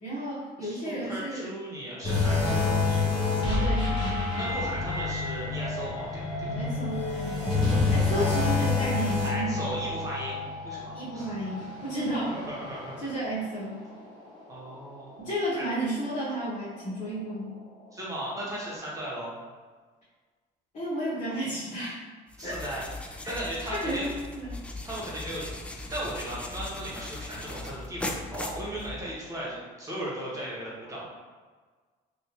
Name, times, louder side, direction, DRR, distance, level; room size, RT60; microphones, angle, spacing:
voice 1, 0.0-1.5 3.4-4.7 6.5-7.4 7.9-9.8 10.9-12.3 13.0-13.8 15.2-17.5 20.7-22.0 22.4-22.6 23.2-23.4 23.7-24.6, right 1 dB, 45° left, -11 dB, 1.4 m, -32 dB
voice 2, 0.6-3.2 4.3-6.6 7.7-8.1 9.2-11.3 12.3-13.1 14.5-15.3 15.6-15.7 17.9-19.4 22.4-22.8 23.3-24.1 24.8-25.4 25.7-31.1, right 1 dB, 20° right, -6 dB, 1.2 m, -37 dB
sound 1, 2.0-13.5 13.9-14.1 14.7-14.8, left 3 dB, 25° left, 1.2 m, -28 dB
sound 2, 22.3-29.3, left 2 dB, 5° left, 0.3 m, -39 dB
3.4 x 2.6 x 3.0 m, 1.5 s
cardioid pair, 110°, 17 cm